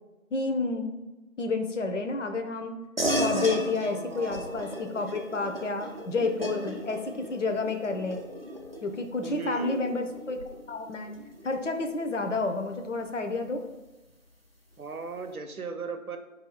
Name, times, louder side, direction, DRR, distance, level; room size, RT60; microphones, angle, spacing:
voice 1, 0.3-1.0 1.4-2.7 3.2-8.2 8.8-10.4 10.7-11.1 11.4-13.6, left 3 dB, 60° left, 6 dB, 0.6 m, -30 dB
sound 1, 3.0-12.8, equal, 45° right, 0.5 m, -35 dB
voice 2, 3.9-4.8 9.2-9.9 14.8-16.2, right 5 dB, 85° right, 7 dB, 0.7 m, -37 dB
4.4 x 2.7 x 4.3 m, 1.1 s
figure-of-eight pair, 175°, 42 cm